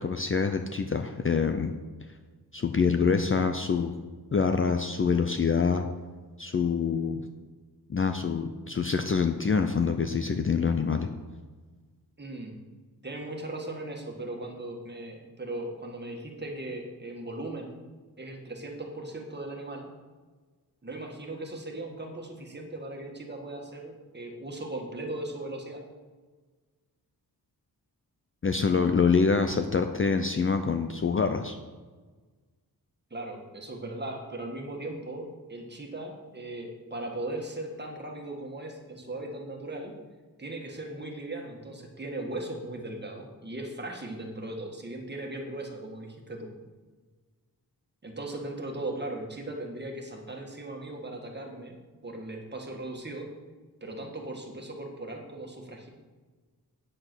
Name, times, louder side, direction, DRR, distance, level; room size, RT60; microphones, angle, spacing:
voice 1, 0.0-1.7 2.5-3.9 4.3-5.9 6.4-7.2 7.9-11.1 28.4-31.6, left 5 dB, 35° left, 7 dB, 0.5 m, -26 dB
voice 2, 12.2-12.6 13.0-17.7 18.2-19.9 20.8-25.8 33.1-39.9 40.4-46.5 48.0-51.7 52.0-53.3 53.8-55.9, right 2 dB, 25° right, 1 dB, 1.7 m, -38 dB
9.1 x 7.7 x 6.1 m, 1.4 s
wide cardioid pair, 160°, 39 cm